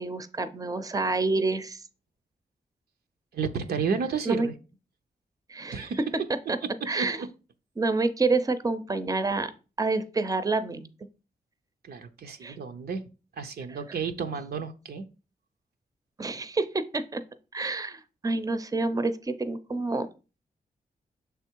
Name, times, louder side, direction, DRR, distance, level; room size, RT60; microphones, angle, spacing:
voice 1, 0.0-1.8 4.3-4.5 5.5-5.9 6.5-6.6 6.9-7.2 7.8-9.5 9.8-10.9 12.4-12.6 13.7-13.8 16.2-17.2 17.5-20.1, right 3 dB, 20° right, 12 dB, 0.6 m, -28 dB
voice 2, 3.3-4.6 5.7-6.0 6.9-7.3 9.4-9.5 11.8-13.0 13.4-15.1, right 5 dB, 80° right, 7 dB, 0.6 m, -32 dB
6.3 x 3.5 x 4.5 m, 0.34 s
cardioid pair, 65°, 16 cm